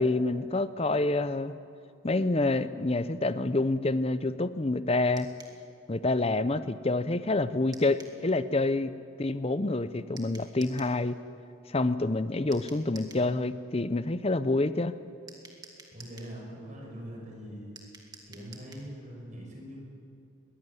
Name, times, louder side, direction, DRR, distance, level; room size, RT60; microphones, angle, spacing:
voice 1, 0.0-1.5 2.0-5.3 5.9-8.9 9.2-11.2 11.7-14.9, left 2 dB, 30° left, 13 dB, 0.6 m, -27 dB
sound 1, 5.2-5.6 7.7-8.2 10.2-11.0 12.5-13.3 15.3-16.3 17.8-18.9, right 3 dB, 20° right, 2.0 m, -50 dB
voice 2, 15.9-17.7 18.3-19.8, equal, 35° right, -1 dB, 5.8 m, -42 dB
21.5 x 16.5 x 9.8 m, 2.5 s
head